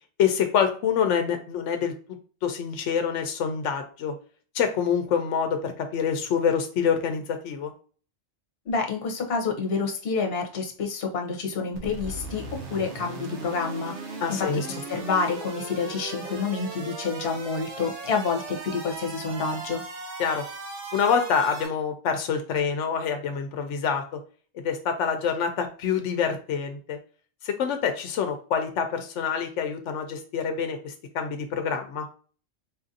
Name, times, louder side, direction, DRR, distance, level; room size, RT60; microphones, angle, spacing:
voice 1, 0.2-1.9 2.4-4.1 4.5-7.7 14.2-14.7 20.2-20.4 20.9-24.0 24.6-27.0 27.4-32.1, left 7 dB, 90° left, 6 dB, 0.9 m, -26 dB
voice 2, 8.7-19.8, left 5 dB, 60° left, 2 dB, 1.0 m, -28 dB
sound 1, 11.7-21.7, right 3 dB, 70° right, 1.1 m, -38 dB
4.3 x 2.5 x 2.6 m, 0.40 s
omnidirectional pair, 1.2 m